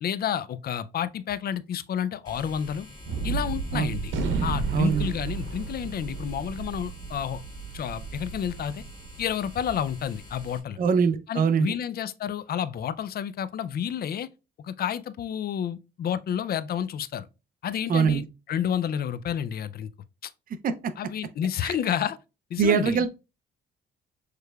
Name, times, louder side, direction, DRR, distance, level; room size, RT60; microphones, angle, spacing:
voice 1, 0.0-2.9 3.2-4.1 4.4-7.4 7.7-8.8 9.2-10.8 11.3-14.3 14.6-17.3 17.6-18.2 18.5-19.9 20.2-20.3 21.0-22.2 22.5-23.0, left 9 dB, 50° left, 0.4 m, -30 dB
sound 1, 2.2-10.6, left 1 dB, 20° left, 2.1 m, -46 dB
Gunshot gunfire, 3.1-9.6, right 5 dB, 75° right, 1.0 m, -33 dB
voice 2, 4.7-5.1 10.8-11.7 17.9-18.2 20.6-20.9 21.6-21.8 22.6-23.1, right 6 dB, 45° right, 0.5 m, -23 dB
6.5 x 3.2 x 2.3 m
cardioid pair, 90°, 20 cm